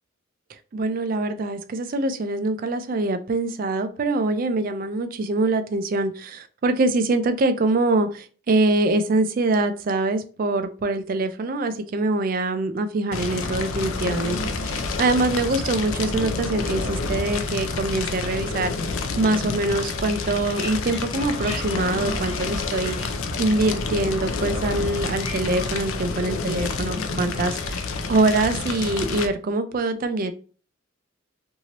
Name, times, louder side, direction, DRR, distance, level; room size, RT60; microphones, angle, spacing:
voice 1, 0.5-30.3, right 2 dB, 40° right, 9 dB, 0.3 m, -24 dB
Fire, 13.1-29.3, left 3 dB, 75° left, 0.4 m, -28 dB
sound 1, 20.1-25.7, left 1 dB, 25° left, 0.8 m, -40 dB
2.8 x 2.7 x 2.9 m, 0.40 s
head